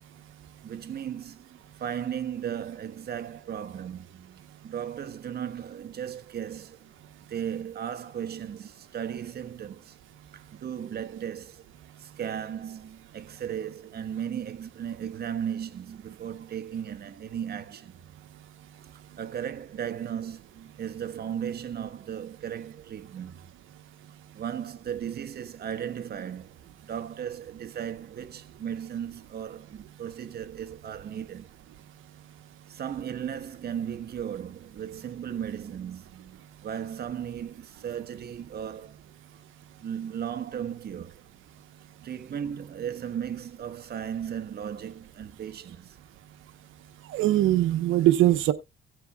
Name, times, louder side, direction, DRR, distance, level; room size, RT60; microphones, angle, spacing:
voice 1, 0.6-6.9 7.3-10.0 10.3-11.6 12.0-17.9 19.2-23.3 24.3-31.5 32.7-39.0 39.8-41.2 42.0-46.0, right 9 dB, 55° right, 1.1 m, -36 dB
voice 2, 47.1-48.5, right 14 dB, 85° right, 0.9 m, -21 dB
16.5 x 7.8 x 2.3 m
cardioid pair, 90°, 20 cm